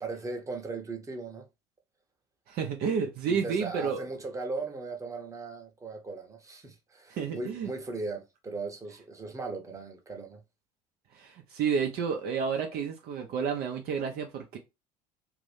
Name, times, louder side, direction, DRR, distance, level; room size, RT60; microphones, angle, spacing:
voice 1, 0.0-1.5 3.3-10.4, right 3 dB, 15° right, 0.9 m, -38 dB
voice 2, 2.5-4.0 7.1-7.7 11.1-14.6, right 6 dB, 50° right, 0.7 m, -30 dB
2.7 x 2.5 x 3.3 m
hypercardioid pair, 75°, 20 cm